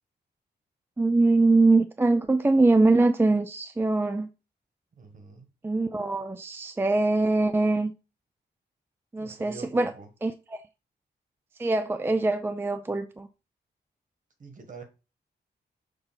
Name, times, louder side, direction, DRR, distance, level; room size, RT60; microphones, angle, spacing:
voice 1, 1.0-4.3 5.6-7.9 9.1-9.9 10.2-10.6 11.6-13.3, right 2 dB, 15° right, 0.3 m, -23 dB
voice 2, 5.0-5.5 9.2-10.1 14.4-14.8, right 4 dB, 45° right, 1.4 m, -45 dB
6.7 x 2.8 x 5.7 m
wide cardioid pair, 170°, 18 cm